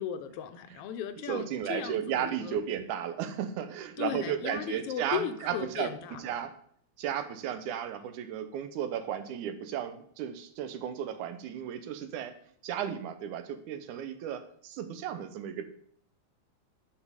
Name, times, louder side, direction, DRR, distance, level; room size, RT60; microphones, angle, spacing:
voice 1, 0.0-2.6 4.0-6.2, left 8 dB, 70° left, 10 dB, 1.5 m, -36 dB
voice 2, 1.2-6.6 7.0-12.4 12.6-15.7, right 9 dB, 90° right, 10 dB, 2.4 m, -34 dB
10.0 x 4.4 x 7.1 m, 0.63 s
omnidirectional pair, 3.4 m